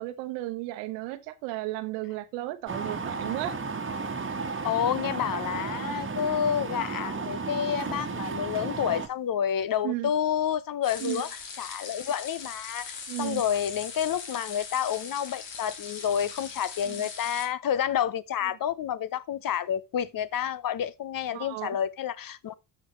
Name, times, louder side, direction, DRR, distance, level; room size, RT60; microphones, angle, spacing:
voice 1, 0.0-3.5 9.8-10.1 11.0-11.3 13.1-13.4 16.8-17.0 21.3-21.8, right 17 dB, 85° right, 1.1 m, -34 dB
sound 1, 2.7-9.1, right 4 dB, 25° right, 1.6 m, -33 dB
voice 2, 4.6-11.3 11.6-22.5, left 9 dB, 45° left, 0.8 m, -29 dB
sound 2, 10.8-17.5, left 5 dB, 60° left, 2.4 m, -40 dB
13.0 x 5.3 x 3.1 m
hypercardioid pair, 65°, 49 cm